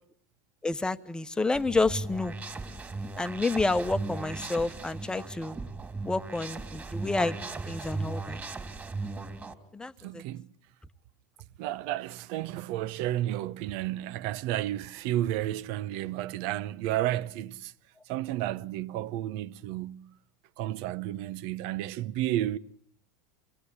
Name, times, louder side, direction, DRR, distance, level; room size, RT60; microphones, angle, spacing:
voice 1, 0.6-2.3 3.2-5.6 6.0-8.4 9.7-10.2, left 3 dB, 10° left, 1.2 m, -29 dB
sound 1, 1.5-9.5, right 3 dB, 15° right, 3.0 m, -37 dB
voice 2, 10.0-10.5 11.6-17.7 18.1-20.2 20.6-22.6, right 14 dB, 60° right, 1.0 m, -32 dB
27.5 x 19.5 x 9.9 m
supercardioid pair, 140°, 11 cm